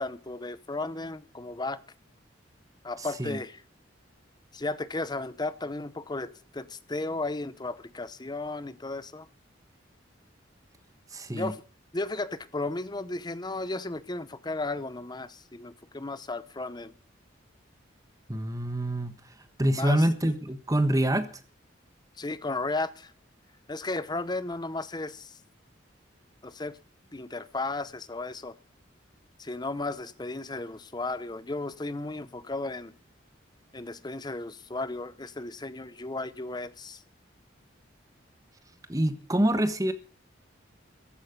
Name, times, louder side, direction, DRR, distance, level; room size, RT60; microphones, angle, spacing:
voice 1, 0.0-1.8 2.8-3.6 4.5-9.3 11.3-11.6 11.9-16.9 19.7-20.0 22.2-23.1 23.7-25.4 26.4-26.8 27.1-28.5 29.4-33.0 33.7-37.0, left 2 dB, 20° left, 15 dB, 0.8 m, -34 dB
voice 2, 3.0-3.4 11.1-11.5 18.3-19.1 19.6-21.3 38.9-39.9, right 1 dB, 20° right, 10 dB, 1.3 m, -26 dB
14.5 x 11.5 x 5.2 m, 0.43 s
head